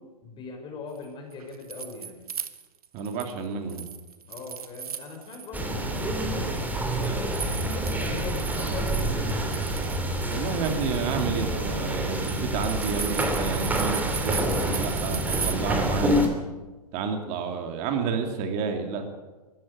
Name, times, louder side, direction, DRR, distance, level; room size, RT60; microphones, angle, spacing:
voice 1, 0.2-2.3 4.3-9.4, left 4 dB, 25° left, 3 dB, 4.8 m, -40 dB
sound 1, 1.3-3.4 3.7-5.6 5.9-15.5, right 7 dB, 65° right, 1.7 m, -37 dB
voice 2, 2.9-3.9 10.3-16.1 16.9-19.1, right 5 dB, 35° right, 5 dB, 3.2 m, -30 dB
sound 2, 5.5-16.3, right 1 dB, 10° right, 2.9 m, -27 dB
21.0 x 14.5 x 8.9 m, 1.2 s
figure-of-eight pair, 115°, 20 cm